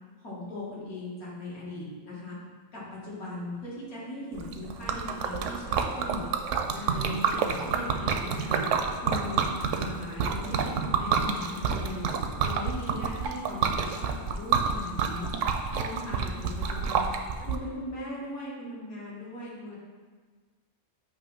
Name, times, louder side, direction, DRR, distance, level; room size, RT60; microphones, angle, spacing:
voice 1, 0.2-2.4 2.7-6.3 6.7-8.6 9.0-9.4 9.7-12.0 12.4-15.3 15.7-17.1 17.5-19.8, left 1 dB, 80° left, -7 dB, 2.2 m, -38 dB
Liquid, 4.4-17.6, right 6 dB, 70° right, 0.9 m, -28 dB
7.7 x 3.0 x 5.4 m, 1.5 s
omnidirectional pair, 1.5 m